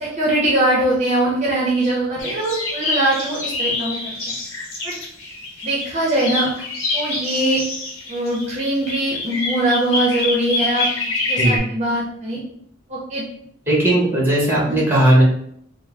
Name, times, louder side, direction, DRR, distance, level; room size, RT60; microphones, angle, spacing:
voice 1, 0.0-4.1 4.8-4.9 5.6-6.5 6.9-7.6 8.1-10.9 11.2-12.4 12.9-13.2 14.7-14.8, right 1 dB, 35° right, -5 dB, 0.7 m, -21 dB
sound 1, 2.2-5.8 6.2-11.6, left 2 dB, 75° left, 0.8 m, -26 dB
voice 2, 13.7-15.2, right 1 dB, 10° right, -5 dB, 1.0 m, -16 dB
3.4 x 2.0 x 3.4 m, 0.69 s
head